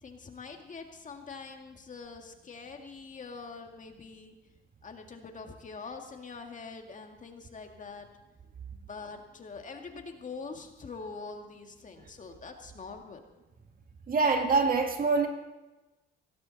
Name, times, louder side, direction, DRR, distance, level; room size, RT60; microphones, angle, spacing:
voice 1, 0.0-4.3 4.8-8.1 8.7-13.2, left 4 dB, 40° left, 4 dB, 2.1 m, -44 dB
voice 2, 14.1-15.3, right 4 dB, 45° right, 4 dB, 2.2 m, -25 dB
17.5 x 16.5 x 4.2 m, 1.1 s
cardioid pair, 90°, 20 cm